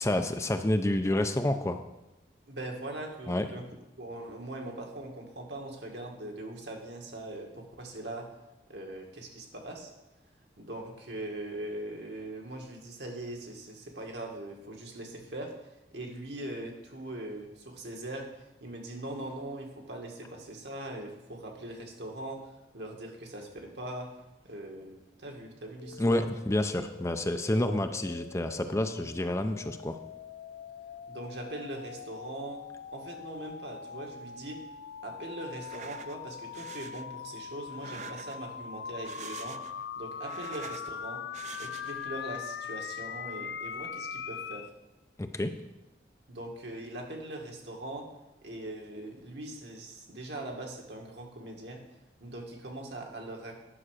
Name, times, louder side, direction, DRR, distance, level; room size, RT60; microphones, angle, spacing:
voice 1, 0.0-1.8 3.3-3.5 26.0-30.0 45.2-45.6, left 1 dB, 15° left, 7 dB, 0.5 m, -29 dB
voice 2, 2.5-3.6 4.0-8.3 8.7-9.9 10.6-26.2 31.1-32.6 32.9-34.6 35.0-39.6 40.0-41.2 41.6-44.7 46.3-48.1 48.4-51.8 52.2-53.5, right 1 dB, 85° right, 1 dB, 1.9 m, -41 dB
sound 1, 25.8-44.7, left 7 dB, 80° left, 0.4 m, -42 dB
sound 2, 35.5-36.2 36.5-37.1 37.7-38.6 38.9-39.8 40.1-40.9 41.3-42.1, right 7 dB, 40° right, 0.4 m, -46 dB
10.0 x 5.8 x 6.5 m, 0.97 s
head